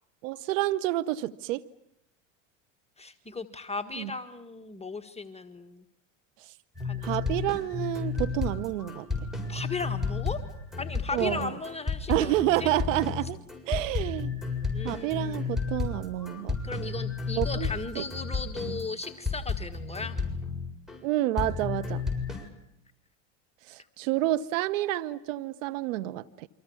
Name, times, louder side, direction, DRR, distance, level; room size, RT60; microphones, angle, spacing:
voice 1, 0.2-1.6 3.9-4.1 6.4-6.5 7.0-9.1 11.1-11.6 12.1-13.4 13.7-14.3 14.8-16.5 17.4-17.7 18.0-18.1 18.7-18.8 21.0-22.0 23.7-26.5, right 15 dB, 75° right, 1.1 m, -29 dB
voice 2, 3.0-5.8 6.8-7.1 9.5-10.4 10.8-12.3 12.6-12.7 14.7-15.5 16.6-20.2, left 4 dB, 15° left, 1.6 m, -36 dB
sound 1, 6.7-21.0 21.4-22.5, left 4 dB, ahead, 7.6 m, -32 dB
29.0 x 25.5 x 7.2 m
hypercardioid pair, 85°, 39 cm